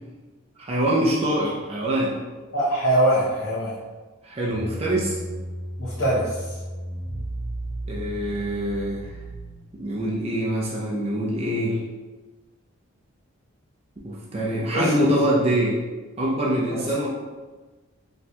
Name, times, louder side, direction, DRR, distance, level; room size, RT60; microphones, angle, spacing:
voice 1, 0.6-2.2 4.2-5.2 7.9-9.1 9.8-11.8 14.0-15.8 16.2-17.1, right 1 dB, 30° right, -4 dB, 0.4 m, -24 dB
voice 2, 2.5-3.7 5.8-6.4 14.7-15.1, right 1 dB, 60° left, -9 dB, 0.8 m, -22 dB
sound 1, 4.5-9.9, right 1 dB, 50° right, 0.8 m, -34 dB
4.2 x 2.6 x 2.3 m, 1.3 s
head